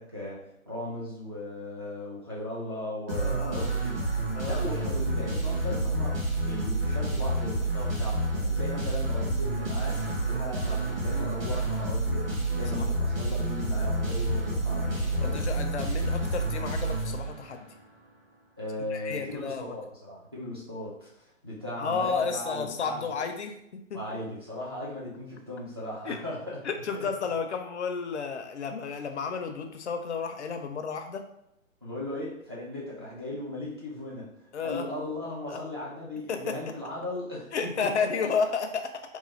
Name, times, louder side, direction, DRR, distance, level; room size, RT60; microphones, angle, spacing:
voice 1, 0.0-4.0 4.4-15.4 18.6-21.1 21.4-23.2 23.9-26.6 26.9-27.1 31.8-34.3 34.6-37.5 37.8-38.1, left 1 dB, 20° right, -8 dB, 0.4 m, -37 dB
voice 2, 3.1-3.7 4.4-4.7 11.1-11.4 12.8-12.9 14.9-17.7 18.9-19.8 21.8-24.2 26.0-26.2 26.6-31.2 34.5-34.9 35.5-35.6 36.3-36.6 37.5-39.0, left 5 dB, 55° left, 6 dB, 0.5 m, -32 dB
sound 1, 3.1-17.7, right 2 dB, 45° right, 1.2 m, -29 dB
3.0 x 2.2 x 3.1 m, 0.81 s
figure-of-eight pair, 135°, 41 cm